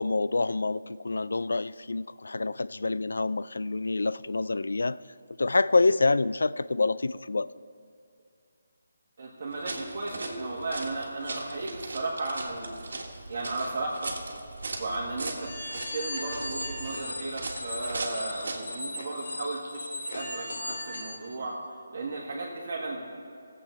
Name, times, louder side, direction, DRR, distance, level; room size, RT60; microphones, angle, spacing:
voice 1, 0.0-5.0 5.4-7.5, left 3 dB, 90° left, 18 dB, 0.3 m, -27 dB
voice 2, 9.2-12.7 13.3-14.1 14.8-21.5 21.9-23.0, right 2 dB, 35° right, -5 dB, 1.6 m, -35 dB
sound 1, 9.5-18.8, right 2 dB, 60° right, 1.6 m, -39 dB
sound 2, 15.4-21.2, left 2 dB, 65° left, 2.2 m, -37 dB
18.0 x 7.7 x 4.5 m, 2.4 s
hypercardioid pair, 180°, 0 cm